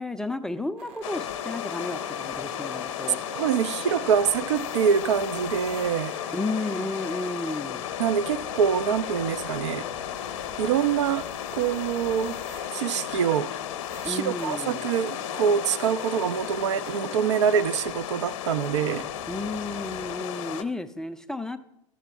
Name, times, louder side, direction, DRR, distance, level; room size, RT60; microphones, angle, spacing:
voice 1, 0.0-3.2 6.3-7.8 14.0-14.8 19.3-21.6, left 2 dB, 5° left, 0.4 m, -32 dB
sound 1, 0.8-20.2, right 6 dB, 35° right, 0.8 m, -47 dB
sound 2, 1.0-20.6, left 11 dB, 55° left, 0.7 m, -34 dB
Bowed string instrument, 1.1-9.4, left 6 dB, 85° left, 0.4 m, -42 dB
voice 2, 3.3-6.1 8.0-9.9 10.6-11.3 11.5-12.4 12.7-13.5 14.1-19.1, right 8 dB, 60° right, 0.4 m, -25 dB
12.5 x 7.3 x 3.4 m
figure-of-eight pair, 85°, 16 cm